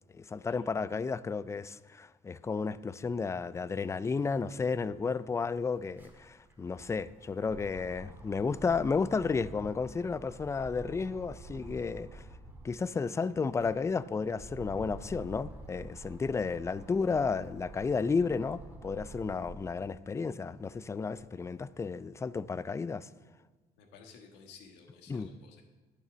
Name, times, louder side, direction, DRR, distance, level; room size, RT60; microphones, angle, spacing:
voice 1, 0.1-12.2 12.6-23.1 25.1-25.3, left 5 dB, 15° left, 0.3 m, -32 dB
sound 1, 5.0-12.8 13.3-19.8 20.3-21.5, right 2 dB, 10° right, 1.8 m, -49 dB
voice 2, 23.8-25.6, left 5 dB, 90° left, 1.5 m, -54 dB
10.5 x 6.7 x 6.2 m
cardioid pair, 110°, 17 cm